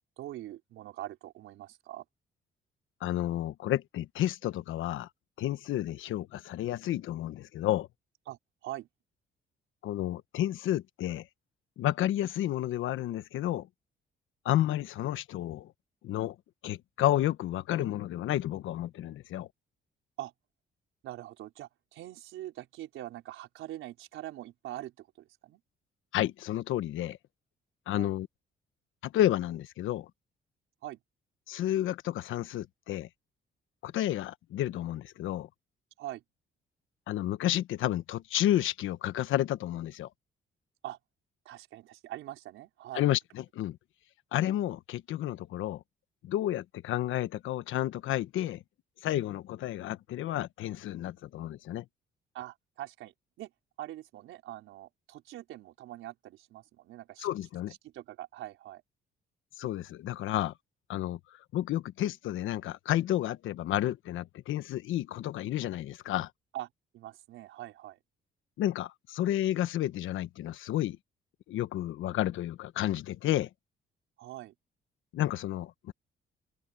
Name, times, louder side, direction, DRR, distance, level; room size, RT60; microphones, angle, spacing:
voice 1, 0.2-2.0 8.3-8.9 20.2-20.3 21.0-25.6 27.9-28.1 30.8-31.0 36.0-36.2 40.8-41.0 41.4-43.1 52.3-53.5 53.8-57.3 57.8-58.8 66.5-66.7 66.9-68.0 74.2-74.5, right 14 dB, 90° right, 4.6 m, -43 dB
voice 2, 3.0-5.1 5.4-7.9 9.8-11.2 11.8-13.7 14.4-15.7 16.0-16.3 16.6-19.5 26.1-27.2 27.9-28.3 29.0-30.1 31.5-33.1 33.8-35.5 37.1-40.1 42.9-43.8 44.3-45.8 46.2-48.6 49.0-51.8 57.2-57.7 59.6-60.5 60.9-61.2 61.5-66.3 68.6-71.0 71.5-73.5 75.1-75.9, left 13 dB, 80° left, 1.2 m, -31 dB
cardioid pair, 90°, 20 cm